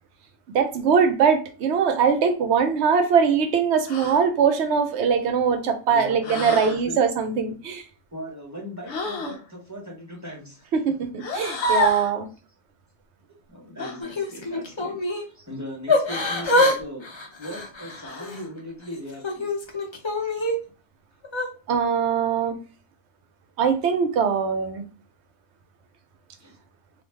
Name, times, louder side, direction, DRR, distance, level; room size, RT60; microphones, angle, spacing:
voice 1, 0.5-7.8 10.7-12.3 21.7-22.6 23.6-24.8, right 6 dB, 65° right, 0.7 m, -21 dB
Woman's harmonics - gasps, 3.9-4.3 6.2-6.8 8.9-9.4 11.2-12.1 13.8-14.0 16.1-16.6 18.0-18.5, left 1 dB, 60° left, 0.8 m, -29 dB
voice 2, 5.9-7.0 8.1-10.7 13.5-17.1 17.4-19.5 26.4-26.6, equal, 15° right, 0.7 m, -38 dB
Yell / Crying sobbing, 14.0-15.3 15.9-16.8 17.0-18.4 18.9-20.5 21.2-21.5, left 2 dB, 45° left, 0.3 m, -25 dB
3.0 x 2.4 x 3.3 m
omnidirectional pair, 1.4 m